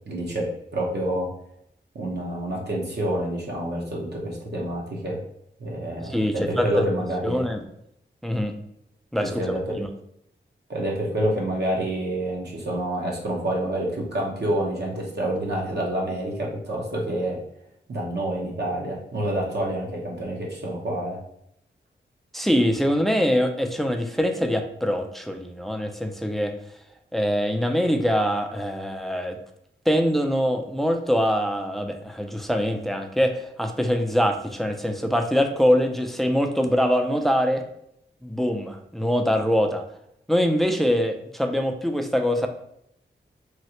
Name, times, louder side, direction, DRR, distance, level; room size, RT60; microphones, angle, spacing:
voice 1, 0.1-0.5 0.7-1.3 1.9-5.2 5.6-7.4 9.2-9.8 10.7-17.4 17.9-21.2, right 1 dB, 60° right, -2 dB, 1.0 m, -28 dB
voice 2, 6.0-6.9 7.2-7.6 8.2-8.6 9.1-9.9 22.3-26.5 27.1-29.4 29.9-37.6 38.2-39.8 40.3-42.5, equal, ahead, 5 dB, 0.4 m, -23 dB
3.1 x 2.4 x 2.9 m, 0.76 s
cardioid pair, 50°, 20 cm